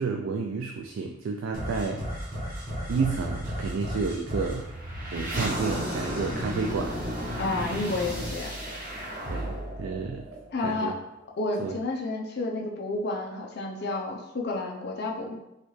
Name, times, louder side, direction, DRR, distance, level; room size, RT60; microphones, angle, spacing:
voice 1, 0.0-2.0 2.9-4.7 5.1-7.0 7.7-7.8 9.3-10.3 10.6-10.9 11.6-11.7, right 4 dB, 80° right, 2 dB, 0.3 m, -30 dB
sound 1, 1.5-10.9, equal, 40° right, 1.0 m, -33 dB
voice 2, 7.4-8.5 10.5-10.9 11.4-15.4, left 2 dB, 55° left, 0 dB, 0.6 m, -30 dB
4.4 x 2.3 x 3.1 m, 0.90 s
head